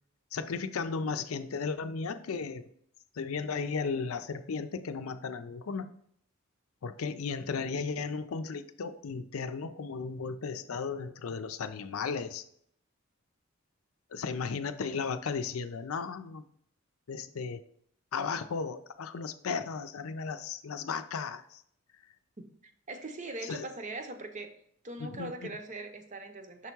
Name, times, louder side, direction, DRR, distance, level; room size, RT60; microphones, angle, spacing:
voice 1, 0.3-2.6 3.2-5.9 6.8-12.4 14.1-16.4 17.1-17.6 18.1-21.6 23.4-23.6 25.0-25.5, left 5 dB, 85° left, 10 dB, 0.5 m, -35 dB
voice 2, 22.9-24.5 24.8-26.7, right 2 dB, 35° right, 6 dB, 0.7 m, -41 dB
6.1 x 3.5 x 4.5 m, 0.68 s
head